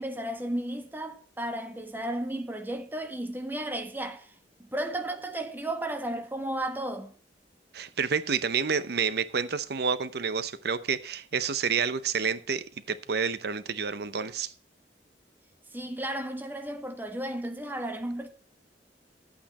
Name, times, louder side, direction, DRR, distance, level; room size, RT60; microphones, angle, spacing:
voice 1, 0.0-4.3 4.6-7.1 15.7-18.3, right 1 dB, 10° right, 1.2 m, -34 dB
voice 2, 7.7-14.5, right 6 dB, 65° right, 0.7 m, -29 dB
11.0 x 8.8 x 4.2 m
head